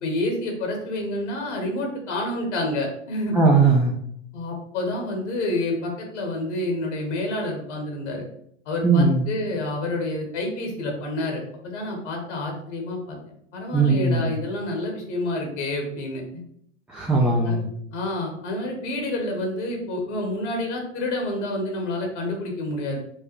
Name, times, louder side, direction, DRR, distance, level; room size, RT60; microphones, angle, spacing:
voice 1, 0.0-3.4 4.3-8.3 8.6-13.2 13.5-16.4 17.4-17.6 17.9-23.0, left 1 dB, 75° left, 2 dB, 1.3 m, -28 dB
voice 2, 3.3-3.9 8.8-9.3 13.7-14.3 16.9-17.6, right 3 dB, 5° right, -2 dB, 0.3 m, -19 dB
4.6 x 2.2 x 3.1 m, 0.69 s
hypercardioid pair, 95°, 36 cm